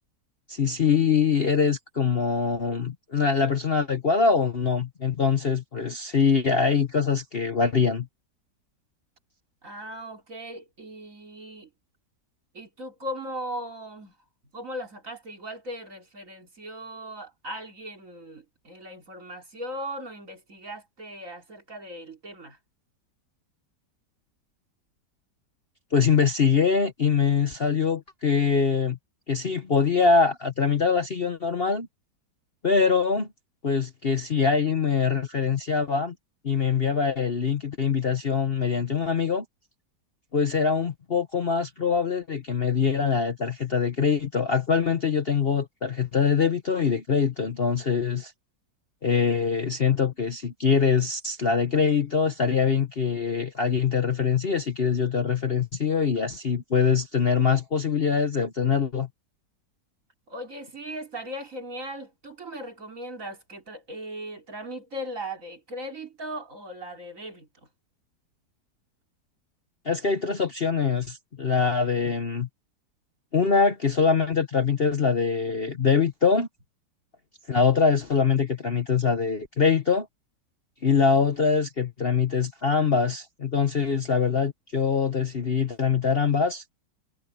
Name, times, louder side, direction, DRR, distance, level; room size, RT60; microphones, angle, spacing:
voice 1, 0.5-8.1 25.9-29.0 29.3-31.9 32.6-33.3 33.6-36.1 36.4-39.4 40.3-48.3 49.0-59.1 69.8-72.5 73.3-76.5 77.5-80.1 80.8-86.6, left 5 dB, 40° left, 1.1 m, -23 dB
voice 2, 9.6-11.7 12.5-14.1 14.5-22.6 60.3-67.5, equal, 50° right, 3.5 m, -38 dB
omnidirectional pair, 1.9 m